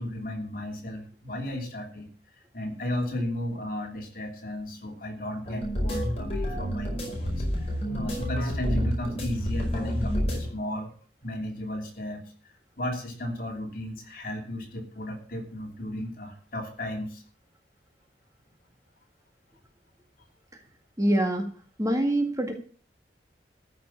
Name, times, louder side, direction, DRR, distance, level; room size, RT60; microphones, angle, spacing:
voice 1, 0.0-2.1 2.5-10.9 11.2-12.3 12.8-17.2, left 1 dB, 50° left, 2 dB, 3.1 m, -34 dB
sound 1, 5.5-10.5, equal, 35° left, 5.1 m, -29 dB
voice 2, 21.0-21.5 21.8-22.6, right 1 dB, 20° right, 4 dB, 1.9 m, -25 dB
14.0 x 6.0 x 8.5 m, 0.42 s
head